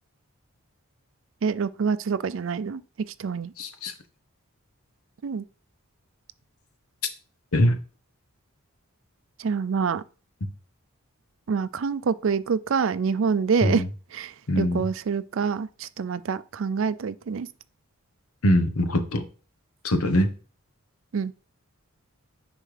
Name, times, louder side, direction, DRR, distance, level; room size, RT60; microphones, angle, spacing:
voice 1, 1.4-2.8 3.2-3.5 5.2-5.4 9.4-10.0 11.5-13.8 14.1-17.5 21.1-21.3, right 5 dB, 60° right, 0.4 m, -26 dB
voice 2, 3.6-3.9 7.5-7.8 10.4-10.5 13.6-13.9 14.5-14.9 18.4-19.3 19.8-20.3, left 1 dB, 80° left, 1.0 m, -22 dB
9.9 x 4.4 x 3.4 m
head